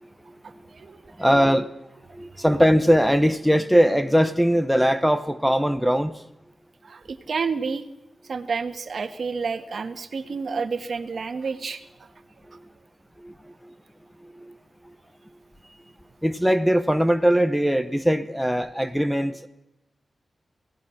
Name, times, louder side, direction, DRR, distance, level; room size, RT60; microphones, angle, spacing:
voice 1, 0.4-1.0 6.8-7.9 8.2-12.1, right 5 dB, 55° right, 9 dB, 1.6 m, -30 dB
voice 2, 1.2-1.7 2.1-6.2 13.2-13.3 13.6-13.7 14.4-14.5 16.2-19.5, equal, ahead, 8 dB, 0.9 m, -20 dB
28.5 x 18.0 x 5.9 m, 0.90 s
wide cardioid pair, 165°, 0 cm